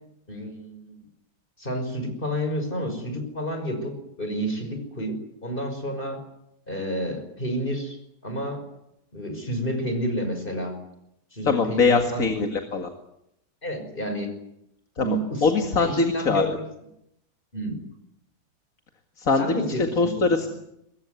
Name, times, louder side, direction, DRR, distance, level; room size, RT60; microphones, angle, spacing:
voice 1, 0.3-1.0 1.6-6.2 6.7-8.0 8.2-8.6 9.1-10.7 11.3-12.5 13.6-14.4 15.0-16.6 17.5-17.8 19.4-20.3, equal, 30° left, 6 dB, 6.1 m, -30 dB
voice 2, 11.4-12.9 15.0-16.4 19.2-19.6 20.0-20.5, left 4 dB, 55° left, 5 dB, 2.4 m, -22 dB
24.0 x 21.5 x 9.6 m, 0.81 s
omnidirectional pair, 1.8 m